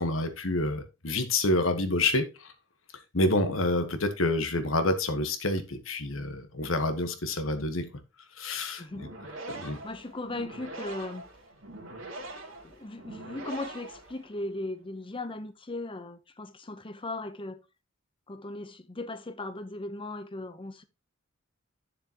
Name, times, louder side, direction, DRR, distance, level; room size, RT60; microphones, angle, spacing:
voice 1, 0.0-2.2 3.1-7.9 8.4-8.8 9.5-9.8, left 2 dB, 80° left, 1.4 m, -28 dB
sound 1, 8.8-14.6, right 2 dB, 75° right, 2.8 m, -43 dB
voice 2, 9.8-11.3 12.6-17.6 18.3-20.8, left 2 dB, 25° left, 0.9 m, -38 dB
9.9 x 6.8 x 3.0 m
head